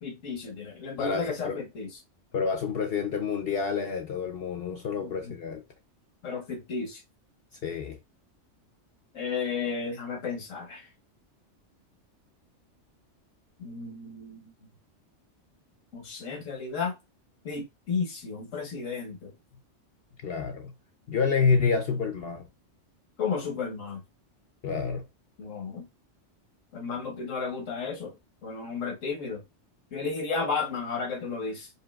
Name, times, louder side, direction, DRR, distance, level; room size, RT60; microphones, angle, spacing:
voice 1, 0.0-1.9 5.0-5.4 6.2-7.0 9.1-10.9 13.6-14.5 15.9-16.9 17.4-19.3 23.2-24.0 25.4-25.8 26.7-28.1 28.4-29.4 29.9-31.7, left 5 dB, 85° left, 1.5 m, -33 dB
voice 2, 1.0-1.6 2.3-5.6 7.6-8.0 20.2-20.7 21.1-22.5 24.6-25.0, left 5 dB, 60° left, 0.7 m, -28 dB
5.2 x 2.7 x 2.3 m
omnidirectional pair, 1.3 m